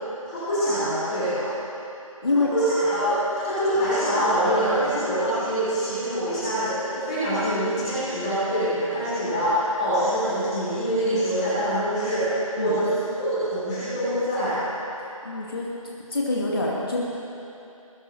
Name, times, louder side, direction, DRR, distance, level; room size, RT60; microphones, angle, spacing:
voice 1, 0.3-1.4 2.3-3.1 3.4-12.9 13.2-14.6, equal, 10° left, -13 dB, 3.5 m, -25 dB
voice 2, 15.2-15.7 16.1-17.0, left 2 dB, 40° left, -4 dB, 2.2 m, -25 dB
22.0 x 16.0 x 2.8 m, 2.9 s
figure-of-eight pair, 165°, 18 cm